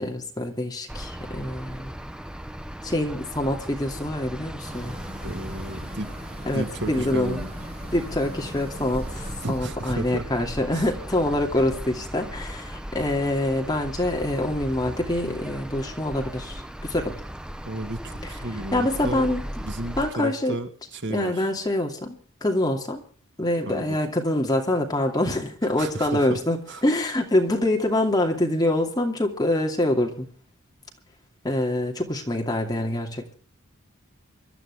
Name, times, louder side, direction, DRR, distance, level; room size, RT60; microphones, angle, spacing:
voice 1, 0.0-1.9 2.8-5.0 6.5-7.4 7.9-17.2 18.2-18.3 18.7-19.4 20.0-20.6 21.1-23.0 23.4-26.6 26.8-30.3 31.4-33.3, left 1 dB, 20° left, 2 dB, 2.6 m, -25 dB
sound 1, 0.9-20.1, equal, 5° right, 0.7 m, -37 dB
sound 2, 4.6-9.6, equal, 30° right, 7.2 m, -40 dB
voice 2, 5.2-6.1 6.5-7.5 9.4-10.2 10.7-10.9 17.7-19.3 19.6-21.5 23.7-24.0 25.8-26.4 26.7-26.8, right 1 dB, 55° right, 7 dB, 1.8 m, -33 dB
25.5 x 12.5 x 3.6 m, 0.43 s
head